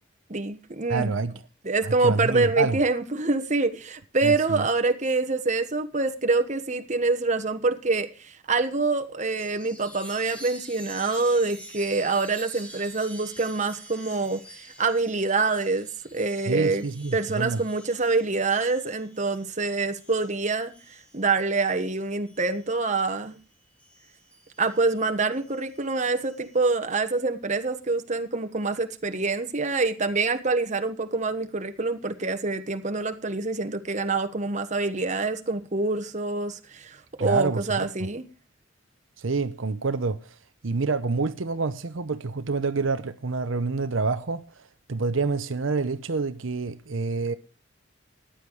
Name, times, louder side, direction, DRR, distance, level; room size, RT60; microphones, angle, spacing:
voice 1, 0.3-1.1 1.6-16.8 17.1-23.4 24.6-38.3, right 3 dB, 40° right, 1.3 m, -26 dB
voice 2, 0.9-1.3 1.8-2.8 4.2-4.6 16.5-17.6 37.2-38.1 39.2-40.2 40.6-44.4 44.9-47.3, right 4 dB, 85° right, 0.8 m, -27 dB
Chime, 9.3-23.3 23.8-26.6, right 1 dB, 5° left, 2.9 m, -47 dB
14.5 x 10.5 x 4.7 m
head